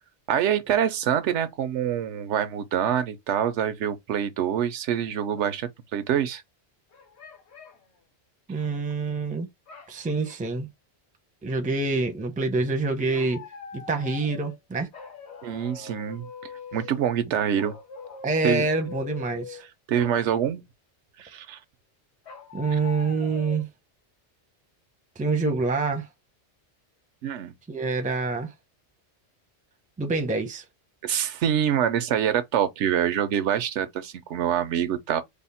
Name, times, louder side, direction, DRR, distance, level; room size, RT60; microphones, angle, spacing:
voice 1, 0.3-6.4 15.4-16.3 16.7-17.8 18.4-18.7 19.9-20.6 21.2-21.6 22.7-22.8 27.2-27.5 31.0-35.2, right 9 dB, 90° right, 0.9 m, -25 dB
sound 1, 5.4-5.6 6.9-7.9 9.7-10.6 13.1-14.6 14.9-17.0 17.6-19.7 20.0-20.3 22.3-23.6, left 5 dB, 70° left, 1.3 m, -42 dB
voice 2, 8.5-9.5 9.9-10.7 11.4-13.5 13.7-14.9 18.2-19.6 22.5-23.7 25.2-26.1 27.7-28.5 30.0-30.6, right 3 dB, 10° right, 0.4 m, -26 dB
3.5 x 2.1 x 4.1 m
omnidirectional pair, 1.2 m